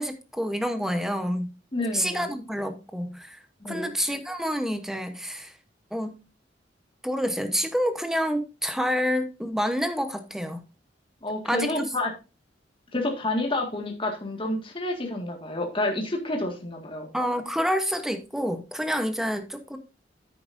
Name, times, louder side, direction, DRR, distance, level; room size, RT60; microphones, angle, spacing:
voice 1, 0.0-1.5 1.9-3.4 3.6-5.5 5.9-6.2 7.0-10.6 11.4-11.9 17.1-19.8, equal, ahead, 1.0 m, -28 dB
voice 2, 1.7-2.3 3.6-3.9 11.2-12.1 12.9-17.1, left 2 dB, 30° left, 1.9 m, -29 dB
9.9 x 8.6 x 2.6 m
head